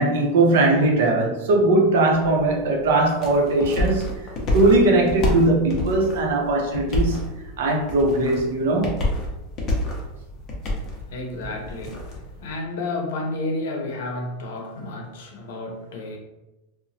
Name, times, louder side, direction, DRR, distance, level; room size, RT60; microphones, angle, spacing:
voice 1, 0.0-4.1 4.5-7.3 7.6-9.1, right 2 dB, 70° right, 1 dB, 0.6 m, -19 dB
sound 1, 2.1-12.6, left 1 dB, 25° left, 0.5 m, -29 dB
voice 2, 11.1-16.2, left 2 dB, 70° left, 2 dB, 0.6 m, -31 dB
2.8 x 2.0 x 2.6 m, 1.0 s
supercardioid pair, 175°, 0 cm